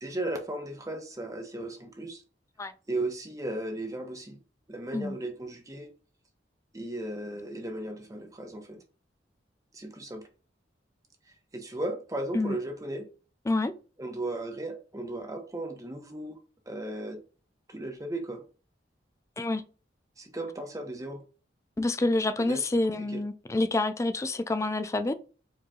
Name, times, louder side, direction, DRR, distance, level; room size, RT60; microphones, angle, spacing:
voice 1, 0.0-2.2 2.9-4.4 4.7-5.9 6.7-8.8 9.7-10.2 11.5-13.1 14.0-16.4 16.7-17.2 17.7-18.4 20.2-21.2 22.4-22.7 23.1-23.2, right 1 dB, 20° right, 0.8 m, -36 dB
voice 2, 21.8-25.1, left 2 dB, 15° left, 0.3 m, -27 dB
4.7 x 3.1 x 2.3 m
head